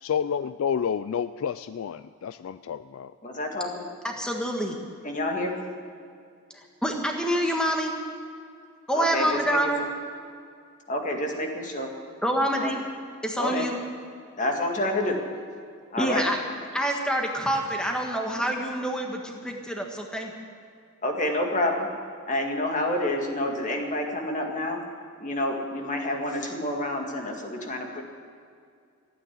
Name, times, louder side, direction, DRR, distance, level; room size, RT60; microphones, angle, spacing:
voice 1, 0.0-3.1, left 7 dB, 65° left, 14 dB, 0.3 m, -29 dB
voice 2, 3.2-3.8 5.0-5.7 8.9-9.6 10.9-11.9 12.6-12.7 13.4-13.7 14.4-15.2 15.9-16.3 21.0-21.9 22.3-24.8 25.2-28.0, left 1 dB, 35° left, 2 dB, 2.0 m, -28 dB
voice 3, 4.0-4.8 6.8-8.0 8.9-9.8 12.2-12.8 13.2-13.8 16.0-16.4 16.7-20.3, equal, 5° left, 1 dB, 1.6 m, -26 dB
15.0 x 9.4 x 9.7 m, 2.3 s
head